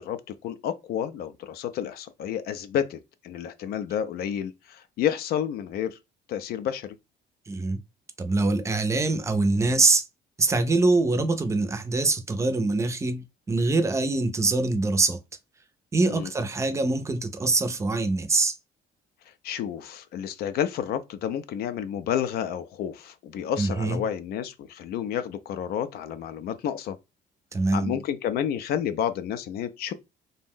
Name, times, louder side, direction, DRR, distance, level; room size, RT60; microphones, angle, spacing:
voice 1, 0.0-6.0 6.3-7.0 16.1-16.3 19.4-27.0 27.7-29.9, left 9 dB, 65° left, 0.4 m, -30 dB
voice 2, 7.5-7.8 8.2-10.1 10.4-15.2 15.9-18.6 23.6-24.0 27.5-28.0, right 3 dB, 15° right, 0.5 m, -24 dB
2.6 x 2.1 x 3.5 m
cardioid pair, 110°, 17 cm